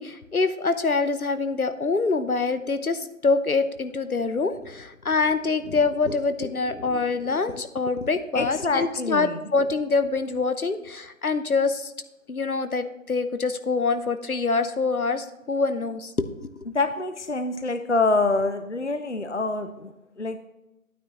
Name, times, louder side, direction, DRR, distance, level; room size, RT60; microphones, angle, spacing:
voice 1, 0.0-11.9 12.3-16.3 16.6-16.7, left 4 dB, 85° left, 11 dB, 0.9 m, -25 dB
voice 2, 8.3-9.4 16.7-19.9 20.2-20.4, left 3 dB, 55° left, 9 dB, 0.6 m, -25 dB
11.0 x 9.2 x 3.0 m, 0.97 s
figure-of-eight pair, 175°, 42 cm